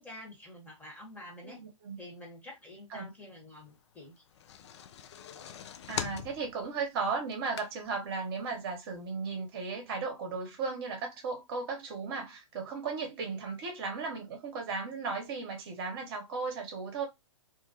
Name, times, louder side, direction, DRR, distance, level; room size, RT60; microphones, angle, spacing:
voice 1, 0.0-1.6 2.0-4.2, left 1 dB, 10° left, 1.1 m, -48 dB
voice 2, 1.4-2.0 2.9-3.1 5.9-17.1, right 4 dB, 45° right, 0.9 m, -36 dB
sound 1, 4.2-8.1 8.5-8.6 8.9-9.0, left 9 dB, 60° left, 0.4 m, -41 dB
2.4 x 2.1 x 2.7 m
figure-of-eight pair, 115°, 17 cm